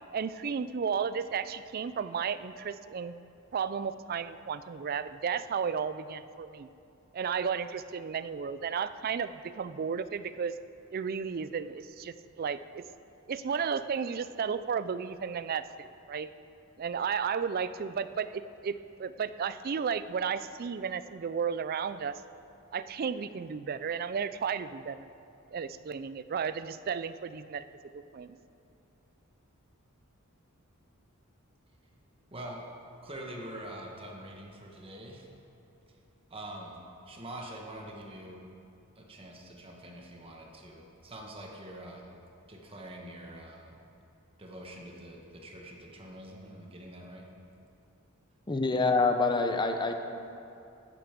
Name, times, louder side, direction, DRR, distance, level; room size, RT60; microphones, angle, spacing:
voice 1, 0.1-3.1 3.5-6.7 7.1-10.5 10.9-12.8 13.3-16.3 16.8-22.2 22.7-25.1 25.5-27.6 27.9-28.4, right 6 dB, 45° right, 14 dB, 0.4 m, -33 dB
voice 2, 32.3-32.6 33.0-35.3 36.3-36.8 37.0-38.4 38.9-42.1 42.4-43.7 44.4-47.3, right 1 dB, 25° right, 0 dB, 1.5 m, -45 dB
voice 3, 48.5-49.9, left 3 dB, 20° left, 5 dB, 0.7 m, -26 dB
13.0 x 9.1 x 5.2 m, 2.7 s
head